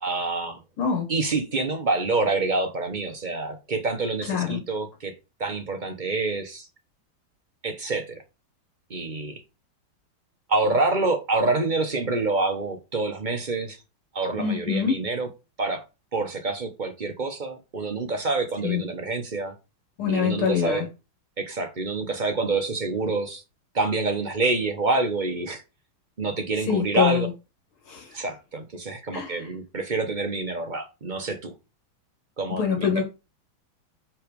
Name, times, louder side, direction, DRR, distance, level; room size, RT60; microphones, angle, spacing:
voice 1, 0.0-0.6 1.1-5.1 5.4-6.7 7.6-8.2 8.9-9.4 10.5-13.8 14.1-15.3 15.6-15.8 16.1-19.5 20.1-20.8 21.4-23.4 23.7-25.6 26.2-27.3 28.1-31.5 32.4-33.0, right 3 dB, 35° right, 0.7 m, -27 dB
voice 2, 4.3-4.6 14.4-15.0 18.6-18.8 20.0-20.9 26.7-27.3 27.9-28.1 29.1-29.4 32.6-33.0, left 7 dB, 85° left, 2.6 m, -24 dB
5.9 x 4.9 x 5.1 m
omnidirectional pair, 2.3 m